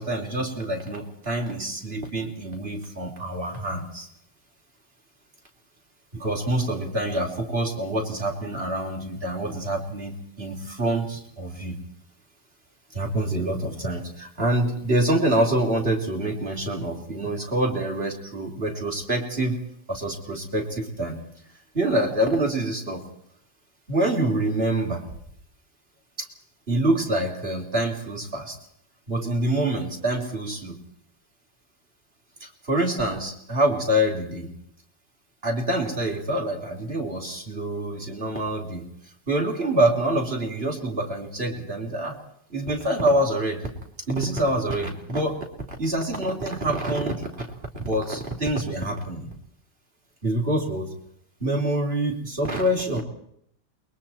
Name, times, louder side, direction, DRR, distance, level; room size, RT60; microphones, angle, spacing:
voice 1, 0.0-4.1 6.1-11.8 12.9-19.6 19.9-21.2 21.7-23.0 23.9-25.0 26.7-28.6 29.1-30.8 32.4-34.5 35.4-38.8 39.3-42.2 42.5-43.7 44.1-45.4 45.8-47.3 47.8-49.3 50.2-50.9 51.4-53.0, right 1 dB, 35° right, 0 dB, 4.3 m, -26 dB
28.5 x 23.0 x 4.5 m, 0.72 s
omnidirectional pair, 1.9 m